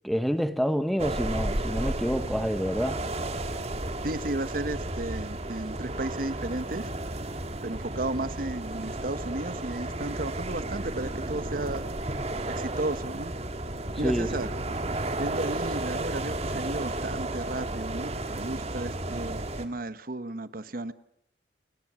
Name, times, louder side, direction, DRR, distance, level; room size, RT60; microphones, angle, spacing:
voice 1, 0.0-3.0 14.0-14.3, equal, ahead, 1.0 m, -27 dB
sound 1, 1.0-19.7, right 1 dB, 35° right, 1.9 m, -33 dB
voice 2, 4.0-6.9 7.6-11.9 12.5-13.3 14.0-14.5 15.2-20.9, right 2 dB, 50° right, 1.0 m, -34 dB
29.0 x 20.0 x 6.1 m
head